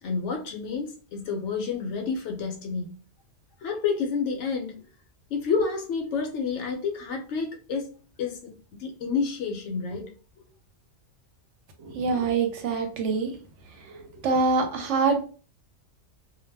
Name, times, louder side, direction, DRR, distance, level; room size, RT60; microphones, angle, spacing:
voice 1, 0.0-3.0 3.6-4.8 5.3-7.9 8.2-8.5 8.8-10.1 10.4-10.5, left 5 dB, 70° left, 0.9 m, -29 dB
voice 2, 11.8-13.3 13.9-14.0 14.2-15.2, right 4 dB, 70° right, 0.8 m, -25 dB
2.3 x 2.1 x 3.2 m
omnidirectional pair, 1.4 m